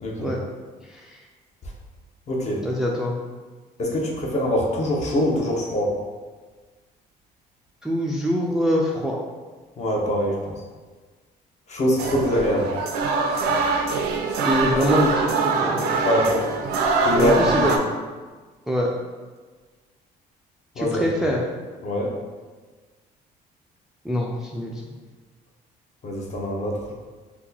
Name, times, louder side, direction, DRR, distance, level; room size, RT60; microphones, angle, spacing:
voice 1, 0.0-0.3 2.3-2.6 3.8-5.9 9.8-10.5 11.7-12.7 16.0-16.5 17.0-17.6 20.8-21.0 21.8-22.1 26.0-26.9, equal, 45° left, -1 dB, 0.7 m, -23 dB
voice 2, 2.6-3.1 7.8-9.2 14.4-16.1 17.1-17.7 18.7-18.9 20.8-21.4 24.1-24.7, equal, 5° right, -2 dB, 0.3 m, -24 dB
sound 1, 12.0-17.8, right 3 dB, 75° right, 0.4 m, -23 dB
2.8 x 2.2 x 3.7 m, 1.4 s
cardioid pair, 110°, 17 cm